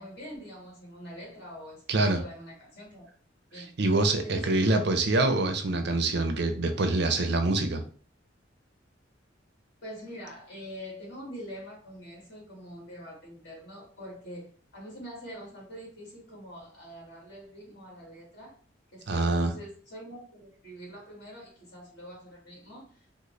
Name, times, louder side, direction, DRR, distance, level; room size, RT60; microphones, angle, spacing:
voice 1, 0.0-3.0 3.5-3.8 4.2-4.8 9.8-18.6 18.9-23.0, equal, 55° left, 1.6 m, -44 dB
voice 2, 1.9-2.2 3.6-7.8 19.1-19.5, right 2 dB, 60° right, 0.5 m, -25 dB
3.8 x 2.0 x 3.1 m
head